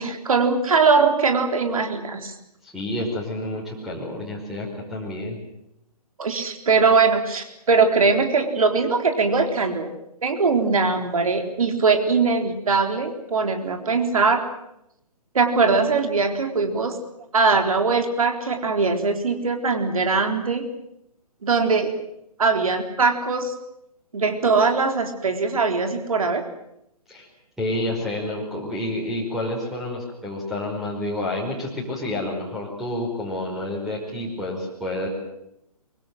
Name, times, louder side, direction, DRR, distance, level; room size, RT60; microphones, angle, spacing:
voice 1, 0.0-2.3 6.2-9.9 10.2-14.4 15.3-17.0 17.3-20.7 21.4-21.9 22.4-23.5 24.1-26.4, right 4 dB, 60° right, 5 dB, 3.9 m, -21 dB
voice 2, 2.6-5.4 27.1-27.3 27.6-35.1, left 1 dB, ahead, -3 dB, 5.3 m, -29 dB
24.0 x 23.5 x 7.8 m, 0.80 s
figure-of-eight pair, 135°, 20 cm